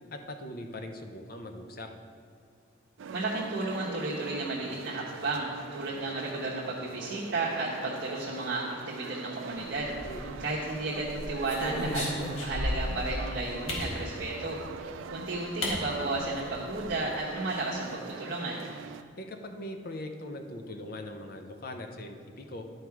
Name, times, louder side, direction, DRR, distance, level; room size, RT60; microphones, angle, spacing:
voice 1, 0.1-1.9 10.0-10.4 19.2-22.7, left 1 dB, 50° left, 5 dB, 0.7 m, -41 dB
sound 1, 3.0-19.0, right 6 dB, 80° right, 0.3 m, -43 dB
voice 2, 3.1-9.9 10.4-12.1 12.4-14.6 15.1-18.6, right 2 dB, 60° right, -7 dB, 1.1 m, -33 dB
sound 2, 9.8-10.5 11.0-13.0 13.7-13.9 15.0-15.1 15.6-15.8 16.1-16.2 16.5-16.9, left 1 dB, 90° left, 1.9 m, -34 dB
11.0 x 4.7 x 4.7 m, 2.4 s
head